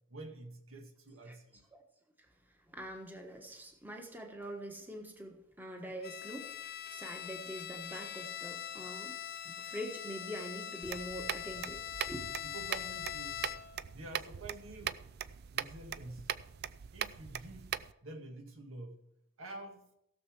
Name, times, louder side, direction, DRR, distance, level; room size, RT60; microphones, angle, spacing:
voice 1, 0.1-1.6 12.4-13.5 13.9-15.0 15.5-16.3 16.9-19.0 19.4-19.9, right 2 dB, 75° right, 4 dB, 1.8 m, -48 dB
voice 2, 2.7-9.1 9.4-11.8 12.1-12.3, equal, 10° right, 3 dB, 1.3 m, -44 dB
Bowed string instrument, 6.0-13.9, left 10 dB, 45° left, 0.4 m, -43 dB
sound 1, 10.8-17.9, right 9 dB, 50° right, 0.4 m, -41 dB
16.5 x 6.9 x 4.6 m, 0.79 s
head